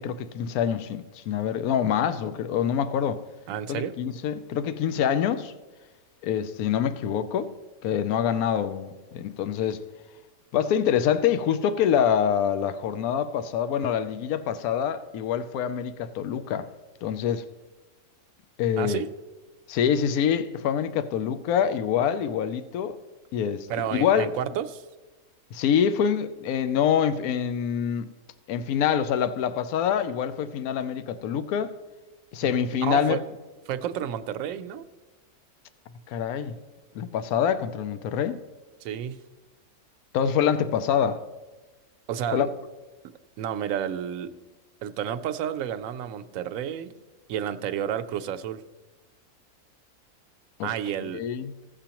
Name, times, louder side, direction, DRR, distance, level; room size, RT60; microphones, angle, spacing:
voice 1, 0.0-3.2 3.7-5.5 6.2-7.5 7.8-9.8 10.5-16.7 17.0-17.4 18.6-19.0 19.7-23.0 23.3-24.3 25.5-28.1 28.5-31.7 32.3-33.2 36.1-36.5 36.9-38.4 40.1-41.2 42.3-42.5 50.6-50.7 51.1-51.5, left 8 dB, 80° left, 1.0 m, -25 dB
voice 2, 3.5-3.9 18.8-19.1 23.7-24.8 32.4-33.2 33.7-34.9 38.8-39.2 42.1-42.5 43.4-44.3 44.8-46.9 47.3-48.6 50.6-51.2, right 9 dB, 70° right, 0.9 m, -31 dB
16.5 x 6.8 x 2.9 m
omnidirectional pair, 1.6 m